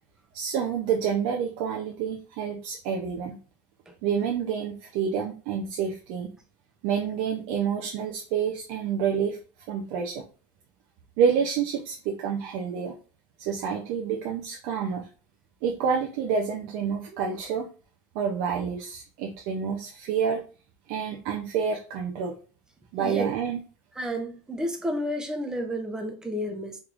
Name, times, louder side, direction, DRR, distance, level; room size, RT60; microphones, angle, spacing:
voice 1, 0.3-3.4 4.0-6.3 6.8-9.4 9.7-10.2 11.2-13.0 13.4-15.1 15.6-17.7 18.1-20.4 20.9-22.4 22.9-23.6, right 7 dB, 65° right, 0.6 m, -28 dB
voice 2, 23.0-23.3 24.0-26.8, equal, 5° right, 0.6 m, -31 dB
3.4 x 3.2 x 2.5 m
cardioid pair, 150°, 9 cm